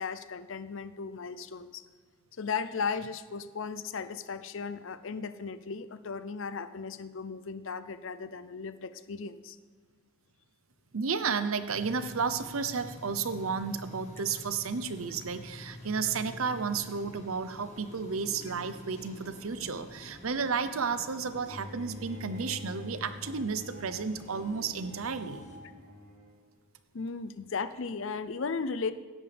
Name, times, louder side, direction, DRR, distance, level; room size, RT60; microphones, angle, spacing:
voice 1, 0.0-1.8 2.4-9.6 26.9-28.9, left 5 dB, 60° left, 13 dB, 0.6 m, -36 dB
voice 2, 10.9-25.5, right 5 dB, 80° right, 11 dB, 0.7 m, -32 dB
sound 1, 11.7-25.6, left 1 dB, 35° left, 1.5 m, -48 dB
Bowed string instrument, 21.4-26.5, left 1 dB, 45° right, 4.0 m, -46 dB
16.0 x 10.5 x 3.4 m, 1.6 s
head